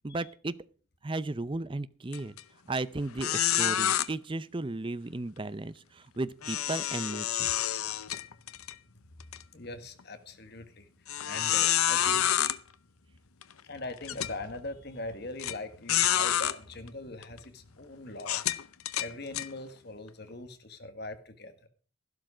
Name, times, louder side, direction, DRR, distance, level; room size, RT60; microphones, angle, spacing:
voice 1, 0.0-0.5 1.0-2.3 2.7-7.5, right 2 dB, 25° right, 16 dB, 0.5 m, -35 dB
sound 1, 2.1-2.4 2.8-2.9 3.2-4.1 6.4-8.7 9.2-9.4 10.0-10.1 11.1-12.6 13.4-13.5 14.0-14.3 15.4-15.5 15.9-16.6 17.2-17.4 18.2-19.5, left 11 dB, 90° left, 0.8 m, -28 dB
voice 2, 9.5-10.9 11.2-12.2 13.6-18.4 19.0-21.7, left 2 dB, 50° left, 9 dB, 1.7 m, -41 dB
13.0 x 12.0 x 5.0 m, 0.39 s
head